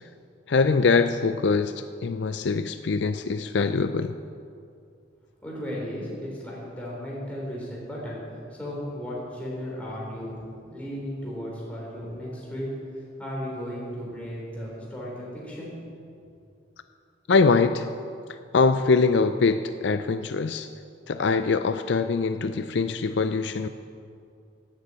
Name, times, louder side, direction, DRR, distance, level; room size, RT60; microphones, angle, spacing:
voice 1, 0.5-4.2 17.3-17.9 18.5-20.7 21.1-23.7, left 4 dB, 65° left, 10 dB, 0.4 m, -23 dB
voice 2, 5.4-8.2 8.5-15.8, equal, 5° left, -5 dB, 4.0 m, -35 dB
11.5 x 9.6 x 8.4 m, 2.4 s
head